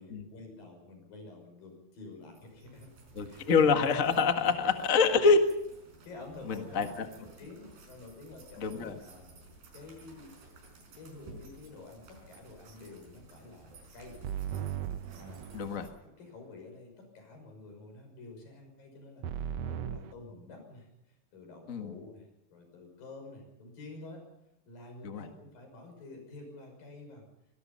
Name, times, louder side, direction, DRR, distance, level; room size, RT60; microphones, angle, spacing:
voice 1, 0.0-2.9 3.2-3.4 4.5-4.6 6.0-9.4 9.7-10.4 10.9-14.2 15.1-15.4 16.2-24.2 24.7-27.3, left 3 dB, 80° left, 4 dB, 7.8 m, -49 dB
sound 1, 2.2-15.9, right 2 dB, 90° right, 6.8 m, -55 dB
voice 2, 3.1-5.4 6.5-7.1 8.6-9.0 15.5-15.9 21.7-22.0 25.0-25.3, left 5 dB, 35° left, 6 dB, 1.3 m, -26 dB
sound 2, 14.2-15.9 19.2-20.1, right 9 dB, 70° right, 1.6 m, -37 dB
24.0 x 20.5 x 5.6 m, 0.81 s
omnidirectional pair, 4.0 m